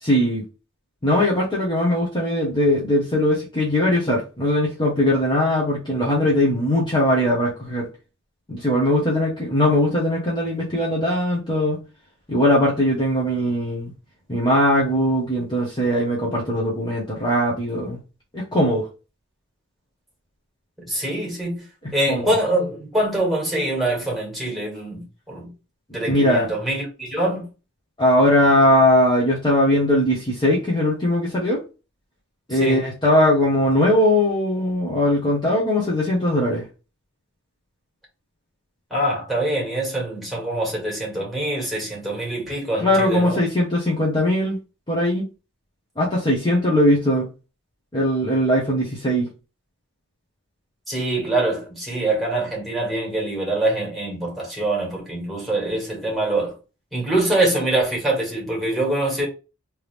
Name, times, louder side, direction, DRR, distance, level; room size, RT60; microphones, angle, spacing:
voice 1, 0.0-0.4 1.0-7.9 8.5-11.8 12.3-13.9 14.3-18.0 18.3-18.9 21.8-22.3 26.1-26.5 28.0-31.6 32.5-36.6 42.8-44.6 44.9-45.2 46.0-47.3 47.9-49.3, left 1 dB, 20° left, 1.1 m, -20 dB
voice 2, 20.8-21.6 21.9-25.5 25.9-27.5 32.5-32.8 38.9-43.4 50.9-56.5 56.9-59.3, right 1 dB, ahead, 2.1 m, -24 dB
3.5 x 3.0 x 3.4 m
head